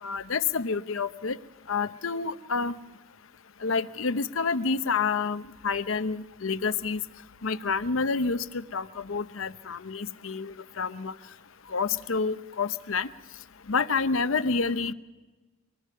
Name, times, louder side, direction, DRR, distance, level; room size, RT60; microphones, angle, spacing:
voice 1, 0.0-1.4 1.7-2.7 3.6-7.0 7.4-11.1 11.7-13.1 13.7-14.9, left 4 dB, 80° left, 12 dB, 0.8 m, -28 dB
25.0 x 19.5 x 5.6 m, 1.2 s
head